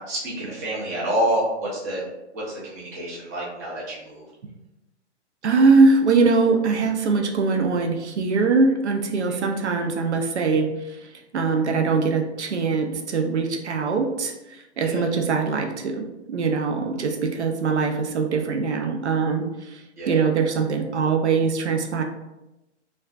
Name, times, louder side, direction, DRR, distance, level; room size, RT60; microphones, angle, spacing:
voice 1, 0.0-2.0 2.3-4.2 9.3-9.4 14.8-15.0 20.0-20.2, right 1 dB, 15° right, -6 dB, 0.4 m, -28 dB
voice 2, 5.4-10.7 11.3-14.3 14.8-19.4 20.1-22.0, right 4 dB, 75° right, 3 dB, 0.5 m, -22 dB
2.4 x 2.2 x 2.4 m, 0.96 s
figure-of-eight pair, 120°, 35 cm